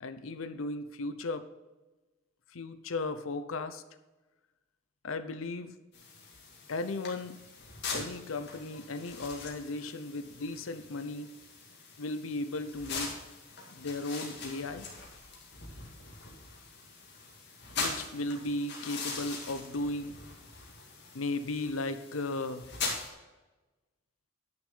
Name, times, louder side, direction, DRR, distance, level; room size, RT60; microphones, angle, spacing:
voice 1, 0.0-1.5 2.5-3.8 5.0-5.7 6.7-7.4 7.9-11.3 12.0-13.2 13.7-14.9 17.8-20.2 21.1-22.7, left 2 dB, 80° left, 11 dB, 0.7 m, -36 dB
sound 1, 5.9-23.1, left 4 dB, 55° left, 2.2 m, -42 dB
10.0 x 6.3 x 5.5 m, 1.1 s
head